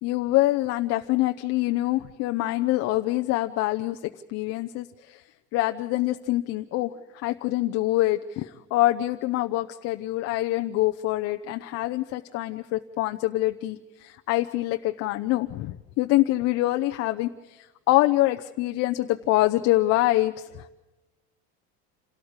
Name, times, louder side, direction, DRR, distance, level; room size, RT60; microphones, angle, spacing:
voice 1, 0.0-5.2 5.5-20.7, left 17 dB, 50° left, 7 dB, 0.7 m, -25 dB
27.5 x 13.5 x 8.1 m, 1.1 s
cardioid pair, 165°, 32 cm